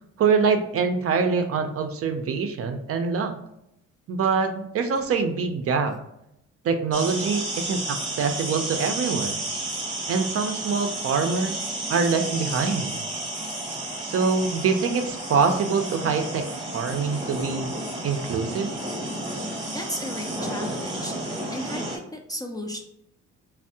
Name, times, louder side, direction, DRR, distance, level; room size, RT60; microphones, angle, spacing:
voice 1, 0.2-3.3 4.1-6.0 6.6-9.4 10.1-11.6 11.9-13.0 14.0-17.7 18.0-18.8, right 5 dB, 50° right, 7 dB, 0.4 m, -24 dB
sound 1, 6.9-22.0, right 1 dB, 15° right, 0.8 m, -32 dB
voice 2, 19.7-21.1 21.5-22.8, equal, 15° left, 2 dB, 0.3 m, -34 dB
3.4 x 2.0 x 2.7 m, 0.80 s
cardioid pair, 90°, 30 cm